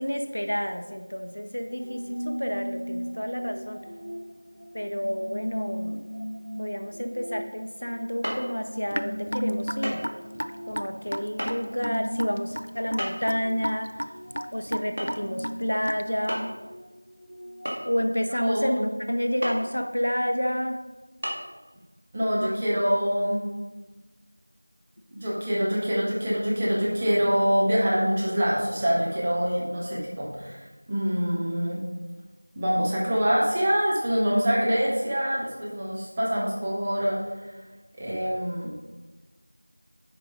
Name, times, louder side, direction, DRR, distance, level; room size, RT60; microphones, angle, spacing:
voice 1, 0.0-3.8 4.7-6.0 6.6-10.0 10.7-13.9 14.5-16.5 17.9-20.8, equal, 40° left, 6 dB, 0.6 m, -29 dB
sound 1, 1.7-18.1, equal, 20° right, 2.2 m, -38 dB
sound 2, 8.2-8.5 9.8-10.1 10.3-10.4 11.4-11.5 13.0-13.4 15.0-15.2 15.5-15.6 16.3-16.6 17.6-18.2 19.4-19.6 20.2-20.3 21.2-21.3, equal, 45° right, 1.9 m, -31 dB
Raindrop / Drip, 8.9-16.3, equal, 60° right, 0.4 m, -34 dB
voice 2, 18.4-18.8 22.1-23.4 25.1-31.8 32.6-37.2 38.0-38.7, equal, 5° right, -6 dB, 0.5 m, -25 dB
9.9 x 4.9 x 3.9 m, 1.2 s
figure-of-eight pair, 180°, 0 cm